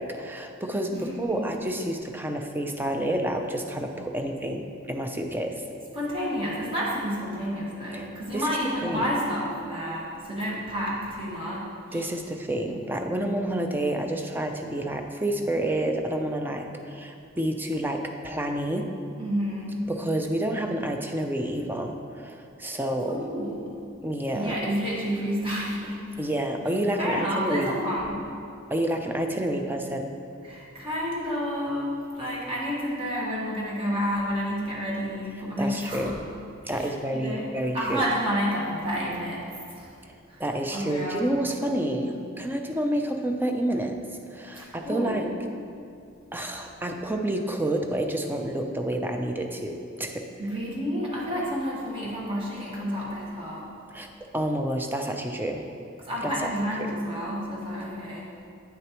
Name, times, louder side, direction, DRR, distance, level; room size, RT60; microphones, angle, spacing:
voice 1, 0.0-5.6 7.9-8.1 8.3-8.5 8.8-9.1 11.9-18.9 19.9-23.3 24.0-24.6 26.2-27.8 28.7-30.1 35.6-36.2 36.7-38.0 40.4-44.0 44.3-45.3 46.3-50.2 53.9-54.1 54.3-55.6 56.2-56.5, right 1 dB, 10° right, 4 dB, 0.4 m, -29 dB
voice 2, 0.9-1.5 5.9-11.7 11.9-12.0 19.2-19.8 23.1-23.7 24.3-26.0 27.0-28.3 30.4-36.2 36.6-37.5 37.7-39.4 39.7-39.9 40.3-40.4 40.7-41.3 44.6-45.3 50.4-53.7 56.0-58.3, equal, 25° right, -6 dB, 1.5 m, -30 dB
8.4 x 6.4 x 3.0 m, 2.5 s
head